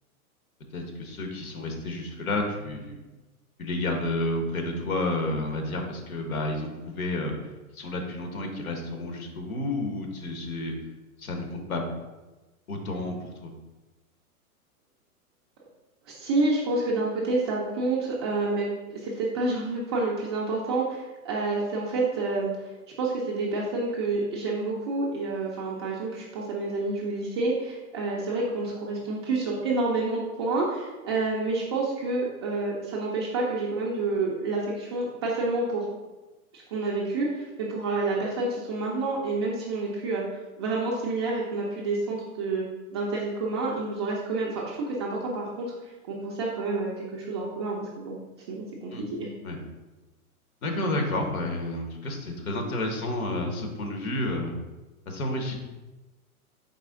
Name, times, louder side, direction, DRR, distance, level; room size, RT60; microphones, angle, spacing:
voice 1, 0.7-3.0 3.6-7.3 7.7-10.7 11.2-11.8 12.7-13.5 48.9-49.1 49.4-49.6 50.6-54.6 55.1-55.6, left 2 dB, 70° left, 3 dB, 1.2 m, -30 dB
voice 2, 16.1-22.5 23.0-35.9 36.5-42.6 42.9-45.7 46.1-48.2 48.5-49.3, right 3 dB, 20° right, -4 dB, 0.3 m, -28 dB
4.2 x 3.5 x 3.6 m, 1.1 s
hypercardioid pair, 110°, 44 cm